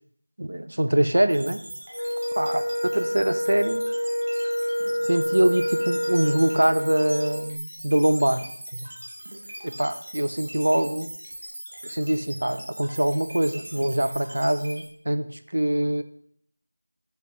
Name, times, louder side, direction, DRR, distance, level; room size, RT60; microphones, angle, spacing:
voice 1, 0.4-1.6 2.4-2.6 2.9-3.8 5.0-8.5 8.7-8.9 9.6-11.1 11.8-15.3 15.5-16.0, right 1 dB, 50° right, 11 dB, 0.3 m, -24 dB
sound 1, 1.3-14.9, equal, 35° right, 1.1 m, -40 dB
Wind instrument woodwind instrument, 1.9-7.5, equal, 60° left, 0.4 m, -28 dB
4.3 x 3.5 x 3.0 m, 0.66 s
figure-of-eight pair, 175°, 0 cm